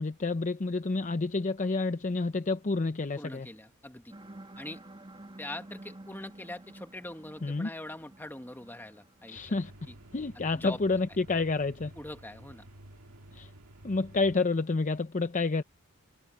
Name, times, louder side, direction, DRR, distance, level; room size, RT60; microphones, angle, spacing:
voice 1, 0.0-3.5 7.4-7.7 9.3-9.7 10.1-11.9 13.3-13.5 13.8-15.6, left 3 dB, 35° left, 0.6 m, -29 dB
voice 2, 3.2-4.1 4.6-4.8 5.4-9.5 9.9-10.0 10.5-10.8 12.0-12.7, left 1 dB, 10° left, 1.3 m, -42 dB
sound 1, 4.1-10.1, right 1 dB, 25° right, 2.0 m, -51 dB
sound 2, 9.3-14.4, right 1 dB, 90° right, 2.0 m, -52 dB
head